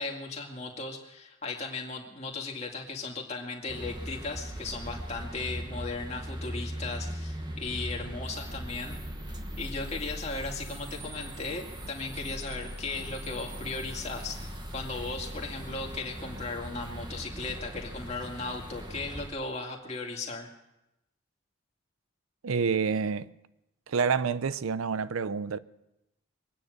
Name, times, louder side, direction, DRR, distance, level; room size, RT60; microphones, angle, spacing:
voice 1, 0.0-9.0 9.6-20.5, left 3 dB, 30° left, 2.2 m, -37 dB
sound 1, 3.7-19.3, equal, 20° right, 1.1 m, -39 dB
voice 2, 22.4-23.3 23.9-25.6, right 5 dB, 85° right, 0.5 m, -28 dB
23.5 x 9.5 x 6.4 m
head